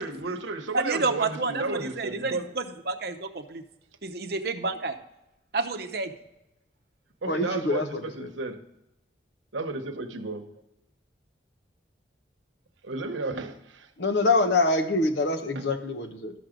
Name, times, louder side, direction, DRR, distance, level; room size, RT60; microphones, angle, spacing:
voice 1, 0.0-2.5 7.2-8.6 9.5-10.5 12.8-13.9 15.5-15.7, right 3 dB, 85° right, 7 dB, 1.0 m, -33 dB
voice 2, 0.7-3.6 4.0-5.0 5.5-6.1, right 3 dB, 55° right, 8 dB, 0.7 m, -30 dB
voice 3, 7.3-8.3 14.0-16.3, left 2 dB, 65° left, 6 dB, 1.0 m, -25 dB
12.5 x 6.1 x 5.1 m, 0.91 s
head